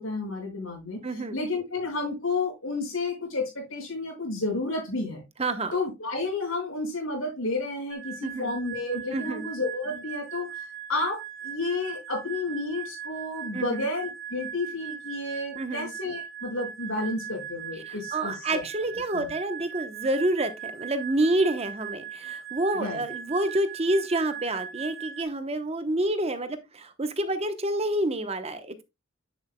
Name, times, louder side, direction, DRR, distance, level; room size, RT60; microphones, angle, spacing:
voice 1, 0.0-1.0 1.3-5.2 5.7-10.6 10.9-18.6 19.1-19.3 22.7-23.0, left 2 dB, 85° left, 5.9 m, -31 dB
voice 2, 1.0-1.4 5.4-5.7 8.2-8.5 9.1-9.5 13.5-13.8 15.6-15.9 17.8-28.8, right 1 dB, 30° right, 0.9 m, -28 dB
sound 1, 7.9-25.2, right 9 dB, 65° right, 0.8 m, -39 dB
9.8 x 7.9 x 2.2 m
head